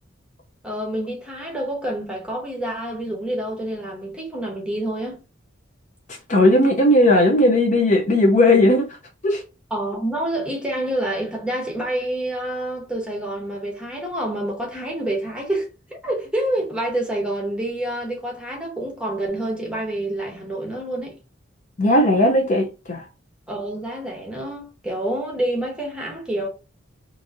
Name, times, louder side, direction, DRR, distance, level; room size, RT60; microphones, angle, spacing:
voice 1, 0.6-5.2 9.7-21.2 23.5-26.5, right 1 dB, 5° right, 0.8 m, -27 dB
voice 2, 6.3-8.9 9.2-9.4 21.8-23.0, left 1 dB, 35° left, 0.5 m, -16 dB
2.8 x 2.5 x 2.5 m
head